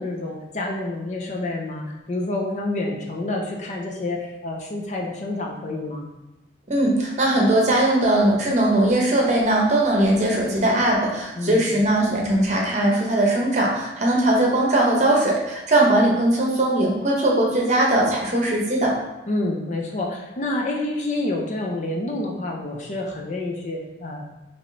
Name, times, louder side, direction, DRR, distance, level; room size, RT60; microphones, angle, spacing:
voice 1, 0.0-6.0 11.4-11.8 19.3-24.3, left 2 dB, 40° left, 0 dB, 0.5 m, -28 dB
voice 2, 6.7-18.9, right 1 dB, 40° right, -2 dB, 0.8 m, -20 dB
4.7 x 3.0 x 2.7 m, 1.0 s
head